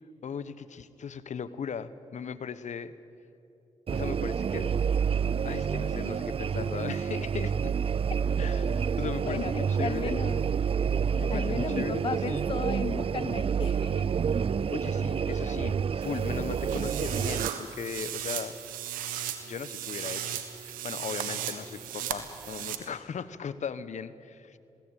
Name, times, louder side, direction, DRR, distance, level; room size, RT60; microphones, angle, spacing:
voice 1, 0.2-2.9 3.9-4.7 5.4-7.7 8.4-10.2 11.1-12.4 14.7-18.6 19.4-20.3 20.6-24.6, left 6 dB, 60° left, 15 dB, 1.1 m, -38 dB
sound 1, 3.9-17.5, right 7 dB, 45° right, 0.4 m, -28 dB
voice 2, 9.2-10.5 11.3-14.2, left 6 dB, 40° left, 17 dB, 0.5 m, -35 dB
sound 2, 16.0-22.8, right 10 dB, 90° right, 1.4 m, -36 dB
21.0 x 17.5 x 9.1 m, 2.8 s
supercardioid pair, 50°, 14 cm